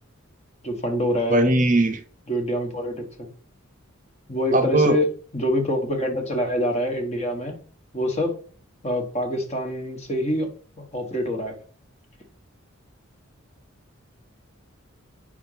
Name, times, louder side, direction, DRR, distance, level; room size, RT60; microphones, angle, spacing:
voice 1, 0.6-1.6 2.3-3.3 4.3-5.1 5.3-7.6 7.9-8.3 8.8-10.5 10.8-11.6, left 1 dB, 30° left, 1.2 m, -25 dB
voice 2, 1.3-2.0 4.5-5.0, right 2 dB, 35° right, 0.6 m, -19 dB
5.0 x 4.2 x 5.6 m
head